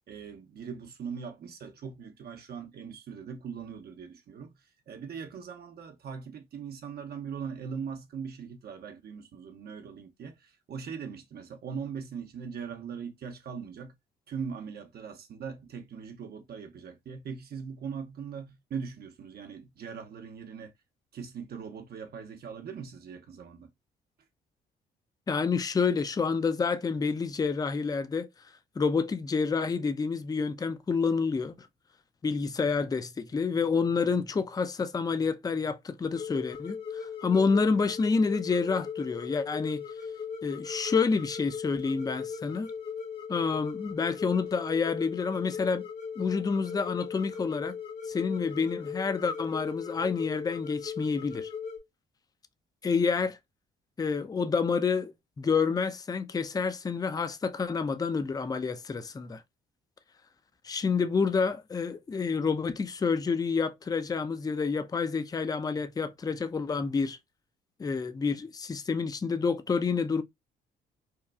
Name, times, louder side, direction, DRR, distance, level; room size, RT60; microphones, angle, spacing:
voice 1, 0.1-4.6 4.9-13.9 14.3-20.7 21.1-23.7, right 6 dB, 50° right, 0.6 m, -40 dB
voice 2, 25.3-28.3 28.8-31.7 32.2-39.8 40.4-42.7 43.3-45.8 46.2-47.7 48.1-51.5 52.8-53.4 54.0-59.4 60.6-67.2 67.8-70.2, left 5 dB, 20° left, 0.4 m, -28 dB
sound 1, 36.1-51.8, left 6 dB, 60° left, 1.2 m, -38 dB
2.9 x 2.3 x 2.3 m
hypercardioid pair, 50°, 20 cm